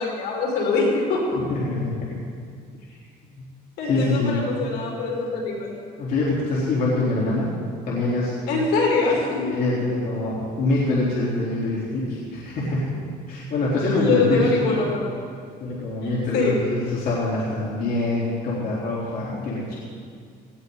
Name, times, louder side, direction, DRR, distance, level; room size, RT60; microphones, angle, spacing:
voice 1, 0.0-1.4 3.8-5.8 8.5-9.4 13.9-15.1 16.0-16.6, left 3 dB, 85° left, -3 dB, 5.7 m, -23 dB
voice 2, 1.5-1.9 3.3-3.4 3.8-4.4 6.0-7.5 7.8-8.3 9.3-12.9 13.3-14.7 15.6-19.8, left 2 dB, 65° left, -7 dB, 4.0 m, -24 dB
19.0 x 18.5 x 4.1 m, 2.1 s
cardioid pair, 110°, 17 cm